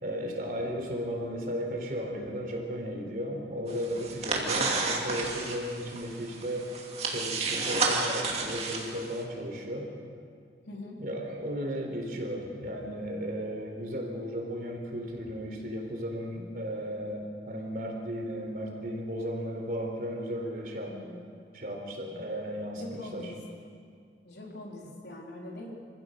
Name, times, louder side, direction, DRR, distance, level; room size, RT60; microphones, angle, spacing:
voice 1, 0.0-6.7 7.0-9.9 11.0-20.9 21.5-23.3, equal, 50° right, 1 dB, 3.9 m, -35 dB
sound 1, 3.7-9.2, right 3 dB, 35° right, 2.6 m, -32 dB
voice 2, 10.7-11.0 20.9-21.2 22.8-23.4 24.2-25.8, left 1 dB, 75° left, -2 dB, 3.7 m, -42 dB
27.0 x 15.5 x 6.6 m, 2.2 s
head